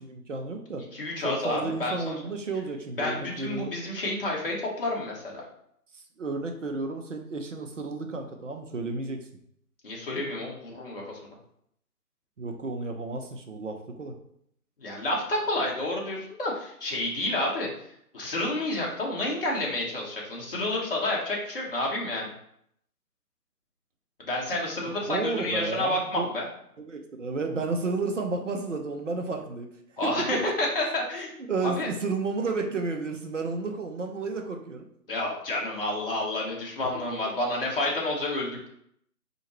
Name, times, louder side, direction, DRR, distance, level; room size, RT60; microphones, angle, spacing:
voice 1, 0.0-0.8 1.2-3.8 5.9-9.2 12.4-14.1 25.1-26.3 26.8-29.7 30.0-30.3 31.5-34.9, right 3 dB, 50° right, 4 dB, 0.7 m, -32 dB
voice 2, 0.9-2.1 3.0-5.4 9.8-11.3 14.8-17.7 18.1-22.3 24.2-26.4 30.0-31.3 31.6-31.9 35.1-38.7, left 1 dB, 35° left, -3 dB, 1.0 m, -29 dB
4.3 x 2.7 x 3.0 m, 0.71 s
figure-of-eight pair, 155°, 47 cm